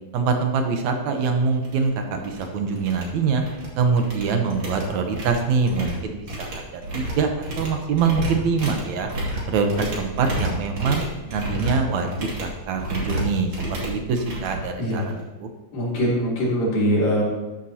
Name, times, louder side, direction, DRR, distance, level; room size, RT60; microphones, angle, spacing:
voice 1, 0.1-3.4 3.8-9.1 9.5-11.0 11.3-15.1 15.4-15.5, right 5 dB, 70° right, 5 dB, 1.9 m, -24 dB
sound 1, 1.1-1.2 1.6-1.8 2.1-2.4 2.8-3.7 4.0-15.2, right 1 dB, 35° right, 2.8 m, -31 dB
voice 2, 11.2-11.6 14.8-15.1 15.7-17.2, equal, 70° left, -7 dB, 5.1 m, -23 dB
14.0 x 10.5 x 2.9 m, 1.1 s
omnidirectional pair, 4.3 m